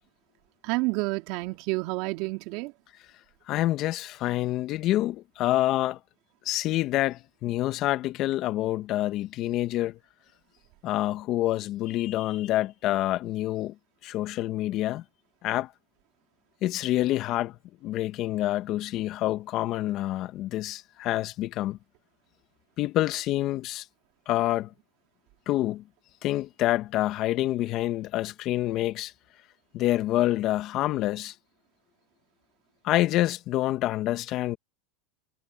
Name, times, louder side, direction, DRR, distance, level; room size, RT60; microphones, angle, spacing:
voice 1, 0.6-2.7, right 24 dB, 60° right, 3.7 m, -29 dB
voice 2, 3.5-6.0 6.5-10.0 10.8-13.7 14.0-15.0 15.4-15.7 16.6-17.6 17.8-21.8 22.8-23.8 24.3-24.7 25.5-25.8 26.2-29.1 29.7-31.3 32.8-34.6, left 15 dB, 45° left, 1.9 m, -27 dB
supercardioid pair, 115°, 0 cm